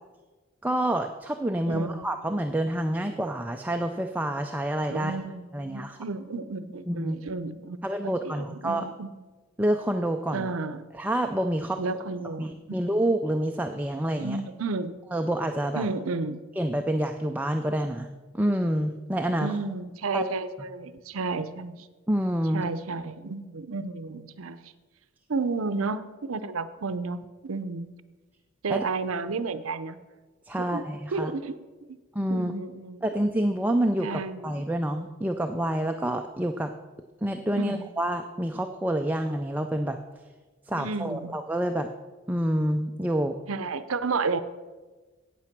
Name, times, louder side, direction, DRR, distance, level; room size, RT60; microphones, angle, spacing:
voice 1, 0.6-5.2 5.5-6.0 6.9-7.2 7.8-8.9 9.6-10.5 10.9-11.8 12.4-14.4 15.1-15.9 16.6-19.5 20.1-20.2 22.1-22.7 28.7-28.8 30.5-31.3 32.1-32.5 33.0-34.1 34.4-36.7 37.2-40.0 40.7-41.9 42.3-43.4, right 1 dB, 10° right, 5 dB, 0.4 m, -27 dB
voice 2, 1.7-2.0 4.9-7.8 8.0-9.1 10.3-10.8 11.8-12.8 14.2-15.0 15.7-16.4 19.4-21.9 22.5-24.7 25.3-27.9 28.6-30.0 30.6-30.9 31.1-31.6 31.9-32.0 32.3-33.0 34.0-34.5 37.6-37.9 40.8-41.3 43.5-44.4, right 3 dB, 90° right, 13 dB, 0.6 m, -32 dB
8.9 x 8.6 x 5.9 m, 1.3 s
head